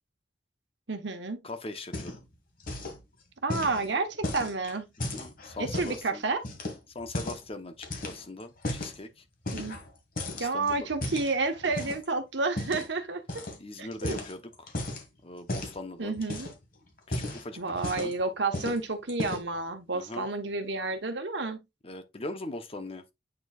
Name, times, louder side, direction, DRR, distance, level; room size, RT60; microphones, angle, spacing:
voice 1, 0.9-1.4 3.4-4.9 5.6-6.4 9.5-9.8 10.4-13.5 13.8-14.2 16.0-16.5 17.6-21.6, right 3 dB, 75° right, 1.2 m, -30 dB
voice 2, 1.4-2.2 3.5-3.9 5.0-6.2 6.9-9.2 10.3-10.9 11.7-11.9 13.6-14.7 15.2-16.1 17.3-18.1 19.9-20.3 21.8-23.0, left 2 dB, 35° left, 1.0 m, -41 dB
sound 1, 1.8-2.3 2.6-3.0 3.5-6.0 6.4-7.5 7.8-9.0 9.4-9.9 10.2-12.1 12.6-12.9 13.3-13.6 13.9-15.0 15.5-15.8 16.2-16.6 17.0-18.2 18.5-18.8 19.1-19.6, left 1 dB, 55° left, 1.9 m, -35 dB
8.7 x 4.6 x 2.4 m
head